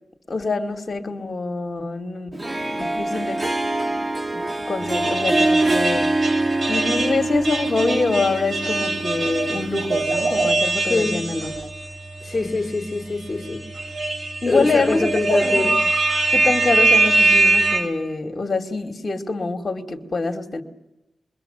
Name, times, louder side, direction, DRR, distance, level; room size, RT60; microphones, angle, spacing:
voice 1, 0.3-3.4 3.8-4.0 4.3-6.1 6.7-11.5 14.4-15.7 16.3-20.6, left 3 dB, 45° left, 2.4 m, -25 dB
Harp, 2.3-10.6, right 2 dB, 30° right, 1.6 m, -25 dB
sound 1, 4.8-11.9 12.3-12.4 13.4-17.8, right 3 dB, 60° right, 7.4 m, -22 dB
voice 2, 10.9-11.4 12.2-13.7 14.5-15.8, left 3 dB, 30° left, 2.7 m, -24 dB
26.5 x 22.5 x 6.8 m
cardioid pair, 50°, 0 cm